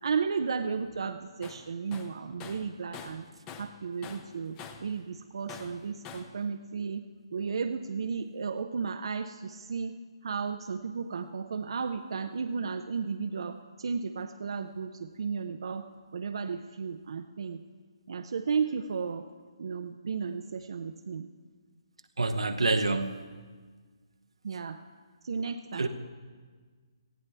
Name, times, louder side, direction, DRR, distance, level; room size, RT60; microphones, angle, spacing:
voice 1, 0.0-3.2 3.6-7.0 7.3-10.0 10.2-15.8 16.1-17.6 18.1-19.3 19.6-21.3 24.4-24.8 25.2-25.9, right 5 dB, 65° right, 7 dB, 0.6 m, -34 dB
Tools, 1.4-1.6 1.9-4.9 5.5-6.4, left 6 dB, 20° left, 0.8 m, -45 dB
voice 2, 22.2-23.2 25.8-25.9, right 3 dB, 90° right, 7 dB, 1.0 m, -27 dB
18.5 x 15.0 x 3.4 m, 1.5 s
hypercardioid pair, 150°, 3 cm